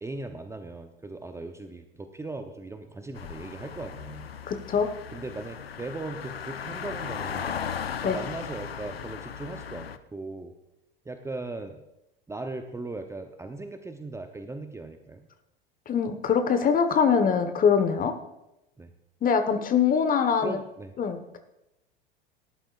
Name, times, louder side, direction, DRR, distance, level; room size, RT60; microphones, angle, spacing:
voice 1, 0.0-4.4 5.1-7.6 8.0-10.5 11.0-11.8 12.3-15.2 18.8-18.9 20.4-20.9, right 2 dB, 10° right, 6 dB, 0.8 m, -38 dB
sound 1, 3.2-10.0, left 7 dB, 85° left, 0.6 m, -37 dB
voice 2, 4.5-4.9 8.0-8.2 15.9-18.1 19.2-20.6 21.0-21.4, left 6 dB, 30° left, 8 dB, 1.3 m, -23 dB
18.0 x 11.5 x 2.5 m, 0.90 s
figure-of-eight pair, 80°, 29 cm